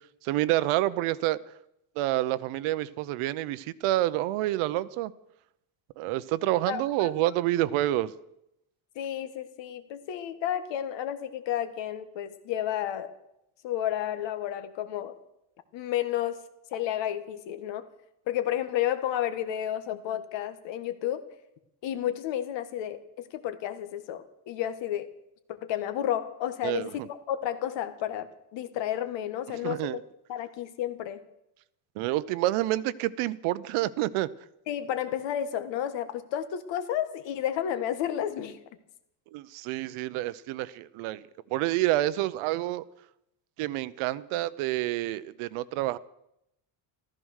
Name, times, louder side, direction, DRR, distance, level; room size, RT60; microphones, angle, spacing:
voice 1, 0.2-1.4 2.0-5.1 6.0-8.1 26.6-26.9 29.5-30.0 32.0-34.3 39.3-41.2 41.5-42.8 43.6-46.0, right 16 dB, 75° right, 17 dB, 0.8 m, -28 dB
voice 2, 6.7-7.1 8.9-13.1 13.6-15.2 15.7-16.4 16.7-17.9 18.3-21.2 21.8-25.1 25.5-30.0 30.3-31.2 34.7-38.6, left 11 dB, 60° left, 10 dB, 1.6 m, -31 dB
14.5 x 14.0 x 6.4 m, 0.82 s
cardioid pair, 180°, 50 cm